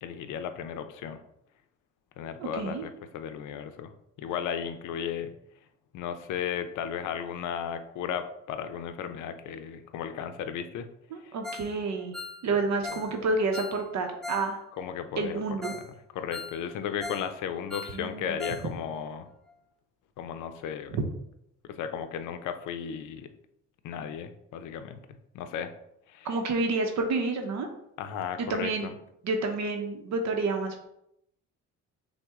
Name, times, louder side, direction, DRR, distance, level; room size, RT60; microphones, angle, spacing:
voice 1, 0.0-1.2 2.2-3.9 4.2-5.3 5.9-10.9 11.2-11.3 12.9-13.0 14.8-15.4 16.1-19.3 20.2-20.9 21.7-23.3 23.8-25.0 25.3-25.7 26.1-26.3 28.0-28.9, left 8 dB, 80° left, 9 dB, 0.5 m, -35 dB
voice 2, 2.4-2.9 11.1-12.1 12.4-14.6 15.2-15.7 17.9-18.4 20.9-21.0 26.2-27.7 28.4-28.9 29.2-30.8, right 3 dB, 65° right, 4 dB, 0.7 m, -29 dB
Ringtone, 11.4-11.7 12.0-14.5 14.8-14.9 15.3-15.4 15.6-15.9 16.2-17.3 17.6-18.7 18.9-19.0 19.5-19.6, left 3 dB, ahead, 0.3 m, -40 dB
6.0 x 2.1 x 3.5 m, 0.79 s
cardioid pair, 90°, 30 cm